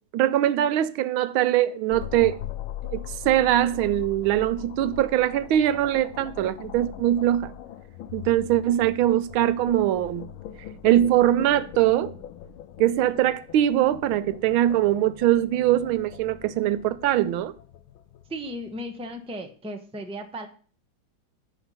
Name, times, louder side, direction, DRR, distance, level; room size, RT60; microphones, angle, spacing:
voice 1, 0.1-2.4 2.9-7.5 8.1-10.3 10.8-12.1 12.8-17.5, right 12 dB, 90° right, 1.5 m, -22 dB
sound 1, 1.9-19.1, left 11 dB, 85° left, 1.5 m, -41 dB
voice 2, 18.3-20.5, equal, 5° right, 0.7 m, -35 dB
10.0 x 5.7 x 5.7 m
omnidirectional pair, 2.2 m